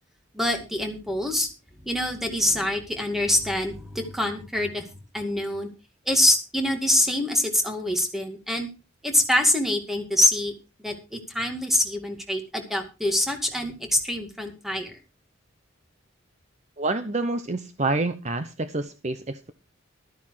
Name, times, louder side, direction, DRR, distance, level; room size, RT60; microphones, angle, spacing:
voice 1, 0.3-1.5 1.8-4.8 5.1-5.7 6.1-8.7 9.0-10.5 10.8-14.9, left 1 dB, ahead, 4 dB, 2.2 m, -25 dB
voice 2, 16.8-19.5, right 2 dB, 35° right, 10 dB, 0.8 m, -28 dB
13.0 x 9.8 x 4.8 m, 0.30 s
head